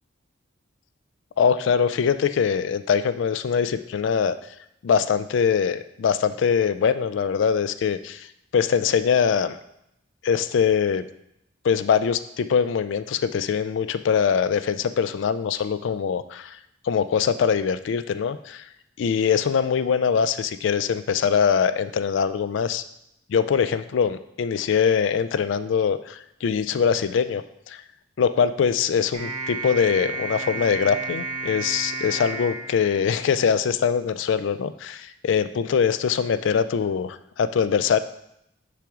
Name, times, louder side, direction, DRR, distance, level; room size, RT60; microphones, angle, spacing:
voice 1, 1.4-4.3 4.8-8.3 8.5-9.6 10.2-11.0 11.6-16.6 16.8-18.6 19.0-22.8 23.3-27.8 28.2-38.0, left 6 dB, 70° left, 13 dB, 0.3 m, -23 dB
sound 1, 29.1-33.6, right 3 dB, 35° right, 1.2 m, -32 dB
5.8 x 4.8 x 3.6 m, 0.79 s
head